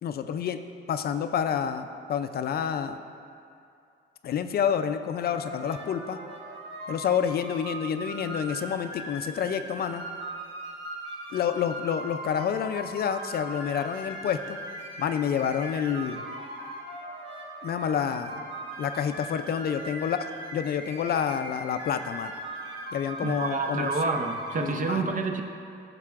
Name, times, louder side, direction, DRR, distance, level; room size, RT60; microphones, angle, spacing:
voice 1, 0.0-0.6 0.9-3.0 4.2-6.2 6.9-10.1 11.3-14.6 15.0-16.2 17.6-18.4 18.8-22.3 22.9-23.9 24.6-25.1, left 8 dB, 50° left, 9 dB, 0.4 m, -28 dB
sound 1, 5.2-24.8, right 1 dB, 70° right, 1.3 m, -39 dB
voice 2, 23.2-25.4, right 4 dB, 40° right, 5 dB, 0.7 m, -28 dB
11.0 x 6.7 x 2.4 m, 2.5 s
cardioid pair, 90°, 20 cm